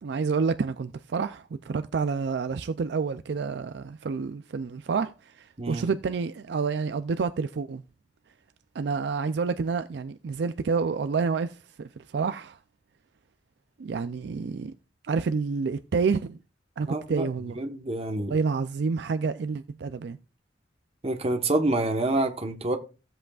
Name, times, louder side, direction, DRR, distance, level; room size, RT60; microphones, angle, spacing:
voice 1, 0.0-7.8 8.7-12.6 13.8-14.7 15.0-16.4 16.8-17.6 18.3-20.2, right 5 dB, 60° right, 0.4 m, -29 dB
voice 2, 16.8-18.4 21.0-22.8, right 2 dB, 30° right, 1.1 m, -27 dB
16.0 x 7.7 x 2.4 m
head